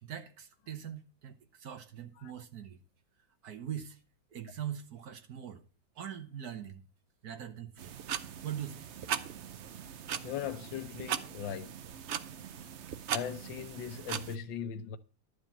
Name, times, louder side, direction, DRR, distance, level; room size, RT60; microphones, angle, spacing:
voice 1, 0.0-2.8 3.4-4.0 4.3-5.6 6.0-6.8 7.2-8.0 8.4-8.8, right 9 dB, 60° right, 1.5 m, -42 dB
sound 1, 7.8-14.4, right 8 dB, 75° right, 0.6 m, -39 dB
voice 2, 10.2-11.7 13.1-15.0, left 8 dB, 90° left, 1.5 m, -39 dB
12.0 x 5.0 x 7.3 m
omnidirectional pair, 2.0 m